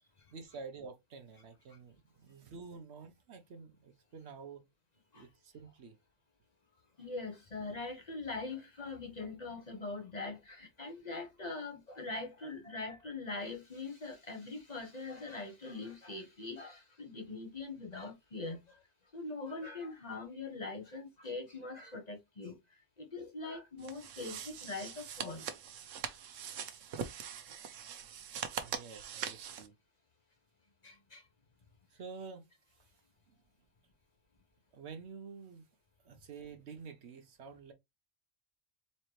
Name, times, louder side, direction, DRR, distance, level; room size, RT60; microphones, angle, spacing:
voice 1, 0.3-4.6 5.1-6.0 28.6-29.7 31.9-32.5 33.3-33.4 34.7-35.7 36.0-37.7, right 5 dB, 65° right, 1.0 m, -49 dB
voice 2, 7.0-18.8 19.1-22.6 23.0-25.4 30.8-31.2, left 3 dB, 35° left, 0.9 m, -42 dB
sound 1, 23.8-29.7, right 8 dB, 90° right, 1.1 m, -42 dB
4.2 x 2.9 x 3.1 m
omnidirectional pair, 1.3 m